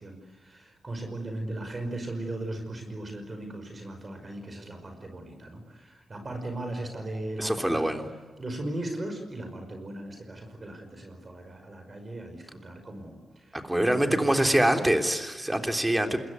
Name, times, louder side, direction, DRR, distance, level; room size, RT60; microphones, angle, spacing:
voice 1, 0.0-7.9 8.4-14.8 15.5-15.7, right 1 dB, 30° right, 5 dB, 5.3 m, -37 dB
voice 2, 7.4-8.1 13.5-16.2, right 1 dB, 10° right, 5 dB, 3.4 m, -25 dB
27.0 x 22.0 x 9.7 m, 1.3 s
cardioid pair, 90°, 0 cm